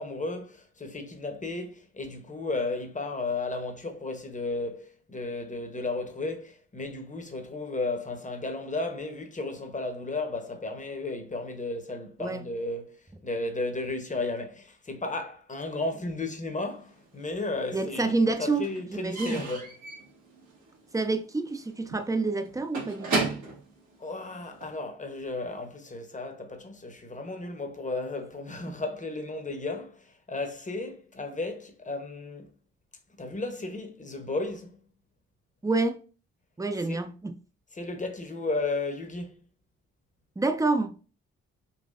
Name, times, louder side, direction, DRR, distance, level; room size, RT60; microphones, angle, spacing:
voice 1, 0.0-19.7 24.0-32.5 33.2-34.8 36.9-37.0 37.7-39.4, left 2 dB, 25° left, 1.0 m, -34 dB
Slam / Squeak / Wood, 16.9-17.7 18.0-24.8, right 3 dB, 70° right, 1.4 m, -35 dB
voice 2, 17.7-19.4 20.9-23.3 35.6-36.0 36.6-37.4 40.4-41.0, right 3 dB, 10° right, 0.6 m, -28 dB
4.0 x 2.5 x 2.5 m
hypercardioid pair, 40°, 31 cm